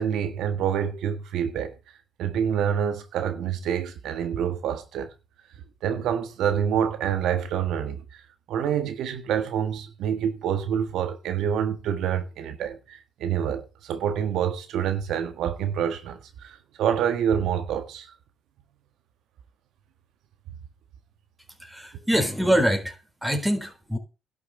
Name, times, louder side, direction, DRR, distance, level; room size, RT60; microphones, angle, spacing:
voice 1, 0.0-1.7 2.2-5.1 5.8-8.2 8.5-18.1, right 8 dB, 80° right, 1.6 m, -27 dB
voice 2, 21.6-24.0, equal, 5° right, 4.0 m, -24 dB
12.0 x 6.6 x 8.5 m
cardioid pair, 90°, 0 cm